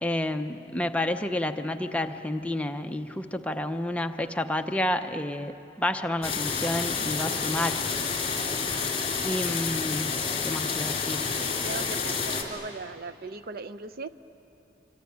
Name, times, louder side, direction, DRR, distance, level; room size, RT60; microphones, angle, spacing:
voice 1, 0.0-7.8 9.2-10.2 10.4-11.4, left 1 dB, 5° left, 6 dB, 0.7 m, -30 dB
sound 1, 6.2-12.4, left 5 dB, 35° left, 3.4 m, -29 dB
voice 2, 11.4-14.1, right 3 dB, 55° right, 13 dB, 0.6 m, -38 dB
26.5 x 23.5 x 9.6 m, 3.0 s
head